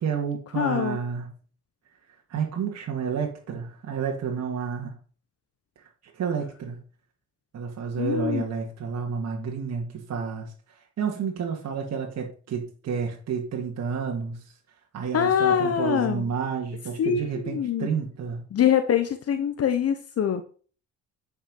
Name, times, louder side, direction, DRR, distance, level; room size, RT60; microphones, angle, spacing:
voice 1, 0.0-1.3 2.3-4.9 6.1-6.8 7.5-14.5 14.9-18.4, right 6 dB, 60° right, 0 dB, 2.1 m, -30 dB
voice 2, 0.6-1.0 8.0-8.4 15.1-16.2 17.0-17.9 18.5-20.4, left 8 dB, 50° left, 9 dB, 0.9 m, -24 dB
9.0 x 5.8 x 5.4 m, 0.41 s
cardioid pair, 90°, 30 cm